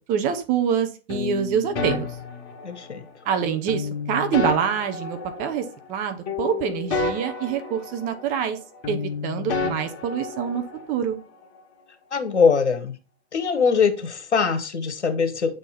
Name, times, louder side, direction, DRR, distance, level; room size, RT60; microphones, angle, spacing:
voice 1, 0.1-2.1 3.2-8.6 8.9-11.2, right 8 dB, 25° right, 1.0 m, -26 dB
sound 1, 1.1-3.1 3.7-6.0 6.3-8.6 8.8-10.9, left 4 dB, 30° left, 2.3 m, -31 dB
voice 2, 2.6-3.0 12.1-13.0 13.3-15.6, left 5 dB, 75° left, 1.5 m, -22 dB
8.9 x 4.2 x 4.3 m
figure-of-eight pair, 125°, 34 cm